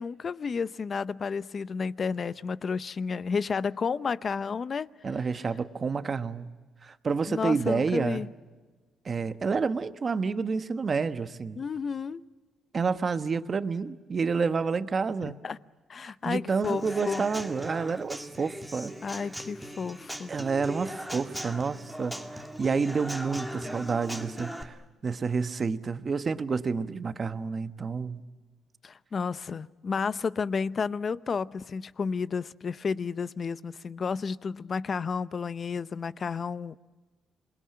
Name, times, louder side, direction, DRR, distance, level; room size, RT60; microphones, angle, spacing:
voice 1, 0.0-4.9 7.3-8.3 11.6-12.2 15.2-15.6 15.9-17.2 19.0-20.3 28.8-36.7, left 5 dB, 45° left, 0.7 m, -31 dB
voice 2, 5.0-6.5 6.8-8.2 9.0-11.6 12.7-15.4 16.2-19.3 20.3-24.8 25.0-28.2, right 5 dB, 40° right, 1.2 m, -29 dB
Human voice / Acoustic guitar / Drum, 16.6-24.6, equal, ahead, 2.1 m, -39 dB
27.5 x 21.0 x 8.7 m
cardioid pair, 90°, 0 cm